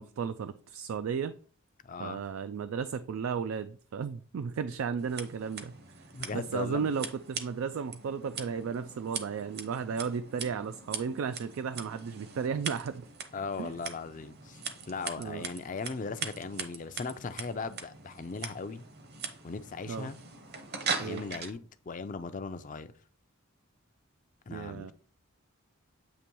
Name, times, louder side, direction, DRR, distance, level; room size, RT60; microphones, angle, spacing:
voice 1, 0.0-1.3 2.0-5.7 6.3-13.1 13.6-13.7 15.2-15.5 19.9-20.1 21.0-21.2 24.5-24.9, right 6 dB, 75° right, 0.3 m, -34 dB
voice 2, 1.8-2.2 6.1-6.9 13.3-14.6 14.9-18.8 19.4-20.2 21.0-22.9 24.5-24.9, left 4 dB, 35° left, 0.4 m, -38 dB
Scissors, 5.0-21.5, right 5 dB, 50° right, 0.8 m, -41 dB
8.4 x 3.0 x 4.5 m
head